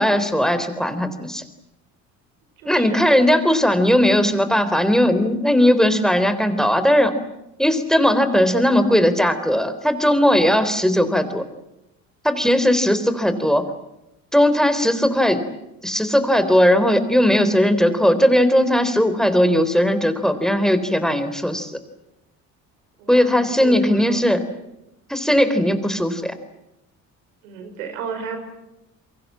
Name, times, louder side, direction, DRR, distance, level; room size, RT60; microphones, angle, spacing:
voice 1, 0.0-1.4 2.7-7.1 7.6-11.4 12.2-13.7 14.3-15.4 15.8-21.7 23.1-24.4 25.1-26.3, equal, ahead, 11 dB, 3.9 m, -18 dB
voice 2, 2.6-3.1 23.0-24.2 27.4-28.4, right 6 dB, 85° right, 6 dB, 5.2 m, -33 dB
29.5 x 23.5 x 7.6 m, 0.91 s
hypercardioid pair, 60°, 39 cm